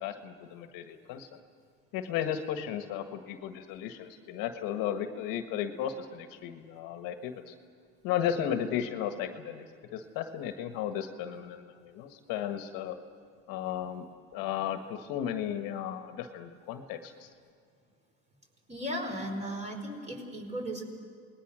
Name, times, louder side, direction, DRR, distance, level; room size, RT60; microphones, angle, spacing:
voice 1, 0.0-1.3 1.9-7.5 8.0-9.7 9.9-13.0 13.5-17.3, left 9 dB, 55° left, 7 dB, 1.6 m, -35 dB
voice 2, 18.7-20.8, equal, 15° right, 2 dB, 4.9 m, -36 dB
28.5 x 20.0 x 6.4 m, 2.2 s
supercardioid pair, 105°, 39 cm